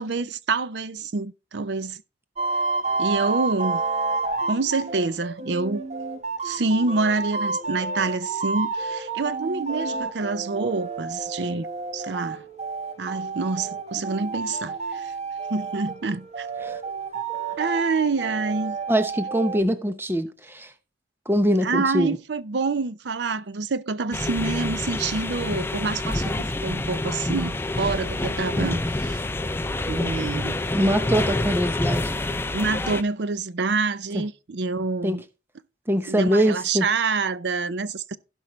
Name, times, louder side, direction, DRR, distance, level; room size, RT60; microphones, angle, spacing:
voice 1, 0.0-2.0 3.0-3.8 4.5-5.8 6.4-11.7 11.9-12.4 13.0-15.1 15.5-16.5 17.6-18.8 21.6-29.2 29.9-30.6 32.5-35.2 36.1-38.2, right 4 dB, 70° right, 0.6 m, -27 dB
sound 1, 2.4-19.6, right 4 dB, 40° right, 1.2 m, -30 dB
voice 2, 18.9-20.7 21.3-22.2 30.7-32.1 34.1-34.2 35.0-35.2 35.9-36.9, equal, 10° right, 0.8 m, -23 dB
sound 2, 24.1-33.0, left 2 dB, 15° left, 0.5 m, -27 dB
16.0 x 5.4 x 3.1 m
head